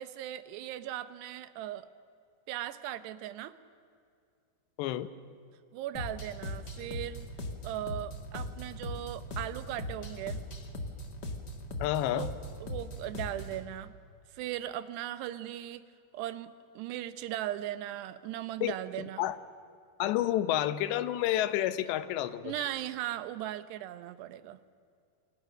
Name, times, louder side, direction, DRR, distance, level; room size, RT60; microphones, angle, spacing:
voice 1, 0.0-1.9 2.5-3.5 5.7-7.3 7.6-10.4 12.1-12.3 12.6-13.9 14.3-15.8 16.1-19.2 22.4-24.6, right 13 dB, 80° right, 13 dB, 3.0 m, -38 dB
sound 1, 5.9-13.6, left 1 dB, 45° left, 1.4 m, -40 dB
voice 2, 11.8-12.3 18.6-18.7 19.2-19.4 20.0-22.7, left 13 dB, 85° left, 13 dB, 3.1 m, -29 dB
29.5 x 25.0 x 6.5 m, 2.4 s
omnidirectional pair, 4.9 m